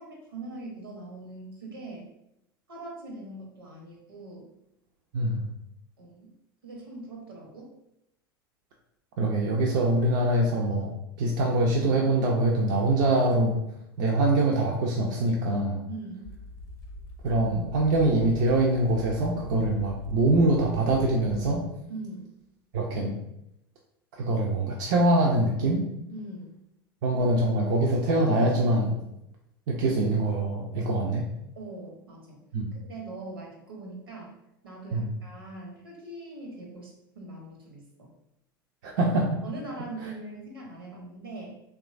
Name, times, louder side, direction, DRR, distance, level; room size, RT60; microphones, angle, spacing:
voice 1, 0.0-2.1 2.7-4.5 5.2-5.4 6.0-6.3 6.6-7.7 15.9-16.4 21.9-22.3 26.1-26.6 31.6-32.4 32.9-34.3 34.6-38.1 39.4-41.6, right 2 dB, 80° right, -1 dB, 0.8 m, -41 dB
voice 2, 9.2-10.9 11.2-13.6 14.0-15.8 17.2-21.6 22.7-23.2 24.2-25.8 27.0-29.0 29.7-31.2 32.5-32.7 34.9-35.1 38.8-39.4, right 2 dB, 55° right, -1 dB, 0.4 m, -24 dB
sound 1, 16.2-21.6, left 1 dB, 25° left, 0.7 m, -42 dB
2.9 x 2.3 x 2.5 m, 0.81 s
figure-of-eight pair, 80°, 12 cm